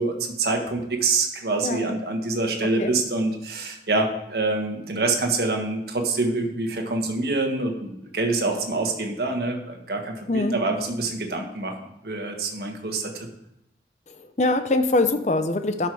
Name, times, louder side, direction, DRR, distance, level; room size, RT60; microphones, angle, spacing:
voice 1, 0.0-11.7 12.0-13.3, right 3 dB, 60° right, 3 dB, 1.6 m, -26 dB
voice 2, 2.6-2.9 10.3-10.6 14.1-15.9, left 2 dB, 40° left, 9 dB, 0.7 m, -23 dB
12.0 x 5.7 x 4.9 m, 0.82 s
head